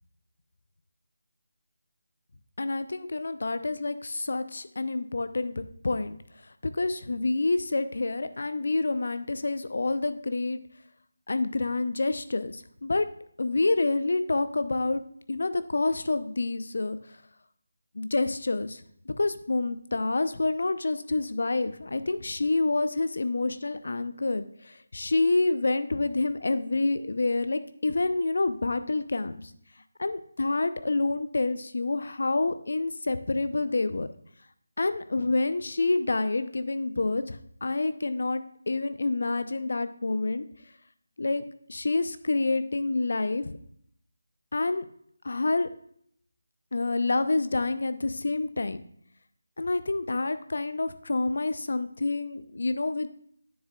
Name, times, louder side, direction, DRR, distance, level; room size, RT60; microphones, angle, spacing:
voice 1, 2.6-6.2 6.6-10.6 11.3-13.1 13.4-15.0 15.3-17.0 17.9-18.8 19.2-29.4 30.0-34.1 34.8-40.4 41.2-41.4 41.7-43.5 44.5-44.8 45.2-45.7 46.7-48.8 49.6-53.1, left 3 dB, 60° left, 11 dB, 0.7 m, -28 dB
9.7 x 7.3 x 2.4 m, 0.65 s
figure-of-eight pair, 160°, 0 cm